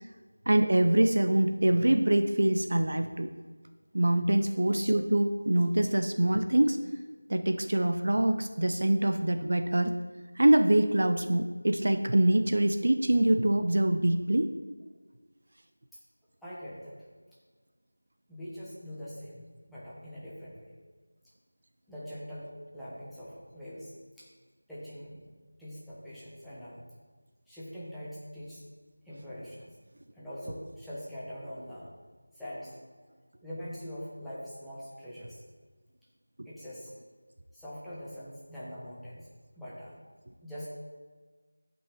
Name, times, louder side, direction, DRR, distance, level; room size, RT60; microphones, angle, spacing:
voice 1, 0.5-3.3 3.9-6.8 7.3-9.9 10.4-14.5, right 1 dB, 55° right, 7 dB, 0.6 m, -24 dB
voice 2, 16.4-16.9 18.3-20.7 21.9-24.3 24.7-25.3 25.6-26.8 27.5-28.6 29.0-29.7 30.1-31.9 32.3-32.8 33.4-35.4 36.4-36.9 37.5-39.3 39.6-40.0 40.4-40.7, equal, ahead, -13 dB, 1.2 m, -43 dB
10.5 x 5.5 x 4.5 m, 1.4 s
figure-of-eight pair, 170°, 0 cm